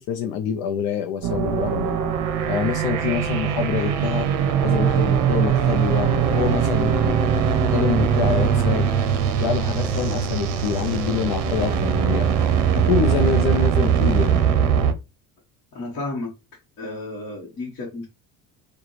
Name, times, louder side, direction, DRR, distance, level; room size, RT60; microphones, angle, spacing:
voice 1, 0.0-2.0 2.5-4.3 4.6-8.9 9.4-12.3 12.7-14.4, left 8 dB, 80° left, 6 dB, 0.5 m, -26 dB
sound 1, 1.2-14.9, right 8 dB, 60° right, 0.6 m, -21 dB
sound 2, 6.2-12.1, left 2 dB, 15° left, 1.3 m, -37 dB
voice 2, 15.7-16.3 16.8-18.1, left 2 dB, 40° left, -3 dB, 1.1 m, -32 dB
4.8 x 2.3 x 3.1 m, 0.28 s
cardioid pair, 170°, 34 cm